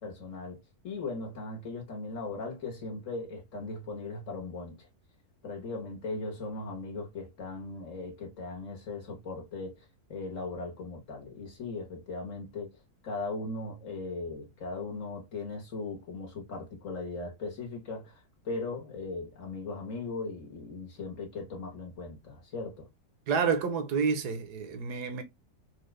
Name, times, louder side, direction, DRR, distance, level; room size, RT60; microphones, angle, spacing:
voice 1, 0.0-4.9 5.4-12.7 13.0-22.9, left 3 dB, 55° left, 1.6 m, -38 dB
voice 2, 23.3-25.2, right 5 dB, 80° right, 1.3 m, -29 dB
4.3 x 2.5 x 3.1 m
omnidirectional pair, 1.7 m